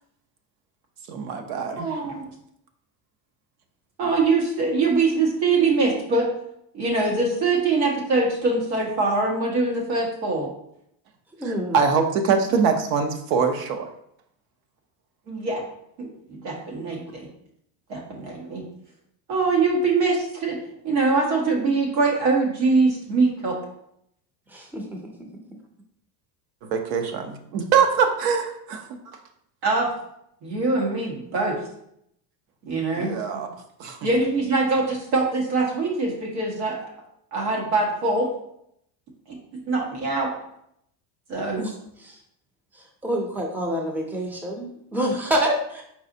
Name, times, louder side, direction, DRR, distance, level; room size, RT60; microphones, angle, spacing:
voice 1, 1.1-2.0 11.7-13.9 26.6-29.0 32.9-33.5 33.8-34.0, right 6 dB, 70° right, 5 dB, 0.8 m, -23 dB
voice 2, 1.7-2.3 4.0-6.3 6.7-10.5 15.3-15.6 16.0-17.3 17.9-18.6 19.3-20.6 20.8-23.6 29.6-29.9 30.4-31.6 32.6-33.5 34.0-36.9 37.3-38.3 39.3-39.4 39.7-40.3 41.3-41.7, right 3 dB, 90° right, -1 dB, 1.7 m, -23 dB
voice 3, 11.4-11.8 24.5-25.1 41.5-41.7 42.0-42.2 42.7-45.8, equal, 5° right, 2 dB, 0.4 m, -27 dB
4.7 x 4.2 x 2.7 m, 0.73 s
cardioid pair, 135°, 50 cm